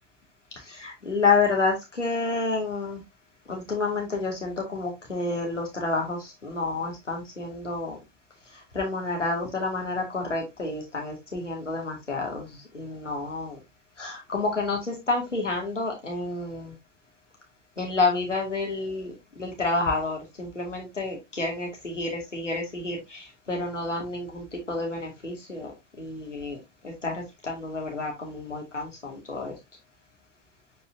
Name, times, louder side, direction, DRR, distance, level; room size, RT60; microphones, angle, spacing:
voice 1, 0.7-3.0 3.5-8.0 8.7-13.6 14.0-16.7 17.8-25.7 26.0-26.6 26.8-29.5, left 3 dB, 90° left, -1 dB, 2.5 m, -29 dB
7.7 x 5.3 x 2.8 m, 0.20 s
figure-of-eight pair, 85°, 36 cm